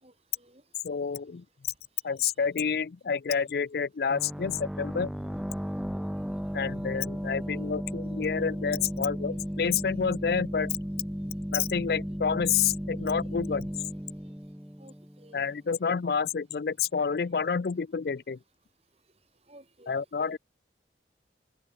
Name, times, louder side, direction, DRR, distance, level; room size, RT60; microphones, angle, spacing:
voice 1, 0.0-0.6 4.1-4.2 6.6-6.7 14.2-14.3 14.8-15.5 19.5-19.9, right 1 dB, 35° right, 5.1 m, -56 dB
voice 2, 0.8-1.4 2.0-5.1 6.5-10.7 11.5-13.7 15.3-18.4 19.9-20.4, left 6 dB, 60° left, 0.4 m, -29 dB
sound 1, 4.1-15.6, equal, 5° right, 1.2 m, -35 dB
open air
head